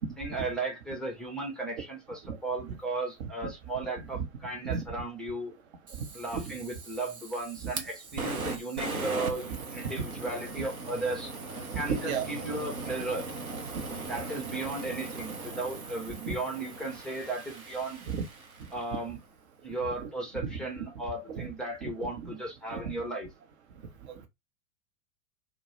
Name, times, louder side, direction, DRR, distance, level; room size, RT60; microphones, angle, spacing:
voice 1, 0.2-5.5 6.1-13.3 14.0-18.0 18.7-19.2 19.6-23.3, right 2 dB, ahead, 0.4 m, -35 dB
voice 2, 3.2-3.5 4.1-4.3 4.6-4.8 6.3-6.5 10.0-10.1 10.6-10.7 11.7-12.3 13.7-13.9 16.2-16.4 18.1-18.2 19.8-20.1 20.4-20.8 21.3-21.5 21.8-22.3 22.7-22.9 24.1-24.3, right 6 dB, 55° right, 0.7 m, -34 dB
Fire, 5.9-19.0, right 3 dB, 90° right, 0.6 m, -39 dB
2.2 x 2.0 x 2.9 m
figure-of-eight pair, 90°, 42 cm